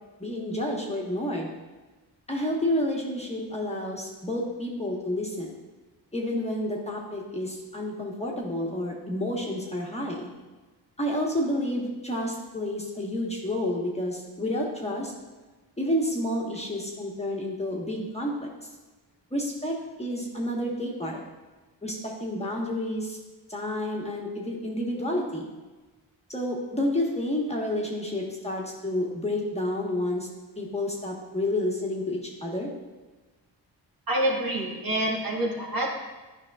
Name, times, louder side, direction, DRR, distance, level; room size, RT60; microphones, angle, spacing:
voice 1, 0.2-1.5 2.3-5.5 6.1-10.3 11.0-15.1 15.8-18.4 19.3-21.2 21.8-23.2 23.5-25.5 26.3-30.3 30.6-32.7, left 1 dB, 15° left, -2 dB, 1.3 m, -30 dB
voice 2, 34.1-35.9, right 1 dB, 50° right, -3 dB, 1.9 m, -27 dB
9.6 x 5.3 x 2.4 m, 1.2 s
supercardioid pair, 50°, 45 cm